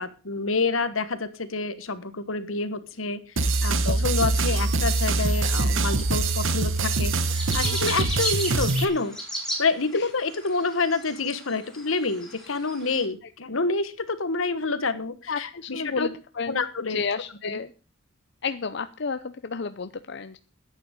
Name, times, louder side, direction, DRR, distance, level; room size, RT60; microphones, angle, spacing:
voice 1, 0.0-9.1 9.6-16.1 16.5-17.0 17.4-17.6, left 3 dB, 80° left, 13 dB, 1.4 m, -28 dB
sound 1, 3.4-8.8, right 3 dB, 75° right, 1.1 m, -24 dB
sound 2, 4.2-13.0, left 1 dB, 5° left, 3.8 m, -37 dB
voice 2, 15.3-16.5 16.8-17.7 18.4-20.4, left 5 dB, 55° left, 10 dB, 0.6 m, -31 dB
11.0 x 8.9 x 6.5 m, 0.35 s
head